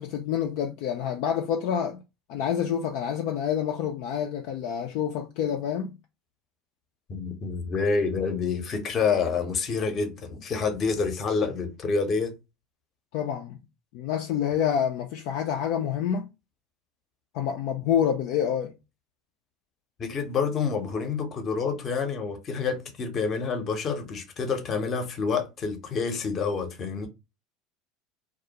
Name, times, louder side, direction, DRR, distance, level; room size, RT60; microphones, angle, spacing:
voice 1, 0.0-2.0 2.3-6.0 13.1-13.6 13.9-16.3 17.3-18.7, left 8 dB, 60° left, 0.3 m, -27 dB
voice 2, 7.1-12.4 20.0-27.1, left 5 dB, 40° left, 0.8 m, -28 dB
2.4 x 2.1 x 2.8 m
hypercardioid pair, 75°, 0 cm